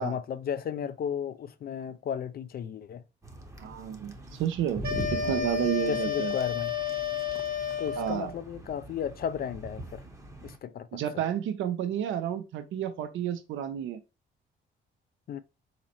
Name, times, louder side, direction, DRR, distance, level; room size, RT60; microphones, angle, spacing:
voice 1, 0.0-3.0 5.2-5.5 5.8-6.7 7.8-10.0 10.4-11.0 15.3-15.4, left 8 dB, 50° left, 0.4 m, -34 dB
sound 1, 3.2-10.6, right 1 dB, 15° right, 0.7 m, -42 dB
voice 2, 3.6-6.3 8.0-8.3 10.9-14.0, right 10 dB, 75° right, 0.5 m, -31 dB
sound 2, 4.8-8.3, left 7 dB, 50° right, 1.1 m, -31 dB
4.0 x 2.9 x 2.5 m
cardioid pair, 90°, 20 cm